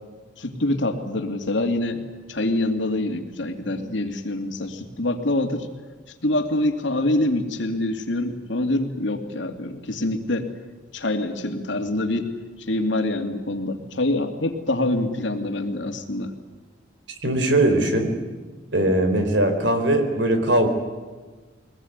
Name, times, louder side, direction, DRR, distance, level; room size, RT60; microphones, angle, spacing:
voice 1, 0.4-2.0 2.3-5.7 6.2-10.5 10.9-12.3 12.7-16.3, left 1 dB, 75° left, 4 dB, 2.8 m, -25 dB
voice 2, 17.2-18.1 18.7-20.7, right 1 dB, 70° right, 6 dB, 4.3 m, -20 dB
23.0 x 19.5 x 9.7 m, 1.4 s
head